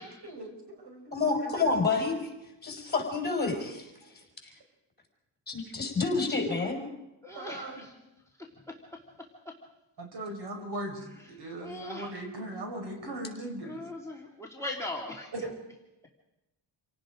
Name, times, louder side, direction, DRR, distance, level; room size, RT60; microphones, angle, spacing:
voice 1, 0.0-1.8 4.0-4.1 7.3-7.9 10.0-13.8 15.3-15.5, right 1 dB, 65° right, 3 dB, 5.8 m, -39 dB
voice 2, 1.1-2.2 2.6-3.9 4.4-4.5 5.5-6.8, left 4 dB, 20° left, 2 dB, 5.9 m, -28 dB
voice 3, 7.2-7.9 11.6-12.1 13.6-15.3, left 2 dB, 5° left, -3 dB, 2.6 m, -39 dB
28.0 x 18.0 x 5.1 m, 0.96 s
wide cardioid pair, 125°, 44 cm